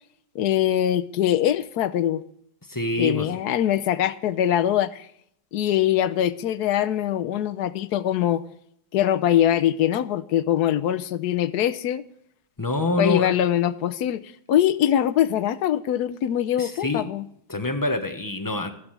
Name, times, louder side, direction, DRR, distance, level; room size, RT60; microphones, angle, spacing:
voice 1, 0.3-2.2 3.0-5.1 5.5-8.4 8.9-12.0 13.0-14.2 14.5-17.2, left 11 dB, 70° left, 1.2 m, -22 dB
voice 2, 2.7-3.3 12.6-13.3 16.6-17.1 17.5-18.7, left 2 dB, 15° left, 1.1 m, -25 dB
13.5 x 13.0 x 3.3 m
omnidirectional pair, 1.8 m